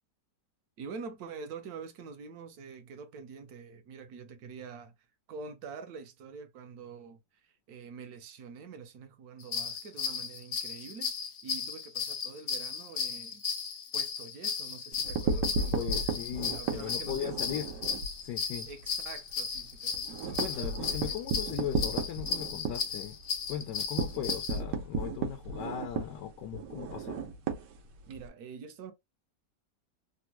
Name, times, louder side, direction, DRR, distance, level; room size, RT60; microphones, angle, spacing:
voice 1, 0.8-4.9 5.3-13.4 13.9-16.0 16.5-17.4 18.7-20.7 21.1-21.2 28.1-28.9, right 5 dB, 70° right, 1.1 m, -46 dB
sound 1, 9.4-24.6, left 6 dB, 70° left, 0.6 m, -35 dB
sound 2, 14.9-18.1 18.5-18.7 19.0-19.1 19.4-28.3, right 4 dB, 90° right, 1.4 m, -34 dB
voice 2, 15.7-17.7 18.2-18.7 20.3-23.2 23.5-27.2, left 10 dB, 85° left, 1.2 m, -38 dB
3.4 x 2.1 x 2.9 m
omnidirectional pair, 1.8 m